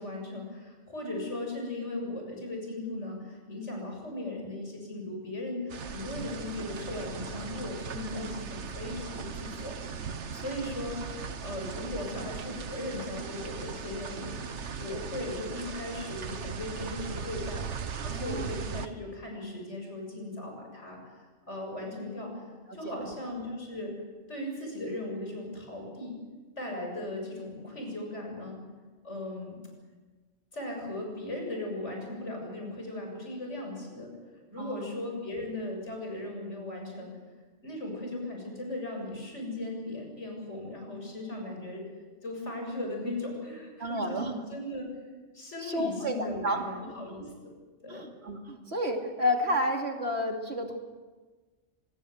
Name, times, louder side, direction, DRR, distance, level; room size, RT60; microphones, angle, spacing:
voice 1, 0.0-14.3 14.8-21.0 21.5-22.4 22.7-24.0 24.3-26.2 26.6-28.6 29.0-29.6 30.5-34.1 34.5-37.1 37.6-41.9 42.2-44.9 45.3-47.5 47.8-48.1, left 1 dB, 90° left, 1 dB, 7.5 m, -37 dB
sound 1, 5.7-18.9, right 6 dB, 80° right, 1.5 m, -38 dB
voice 2, 18.1-18.5 22.7-23.1 34.6-34.9 43.8-44.3 45.6-46.6 47.9-50.8, equal, 65° right, 3 dB, 3.2 m, -31 dB
25.5 x 20.5 x 8.0 m, 1.3 s
omnidirectional pair, 1.2 m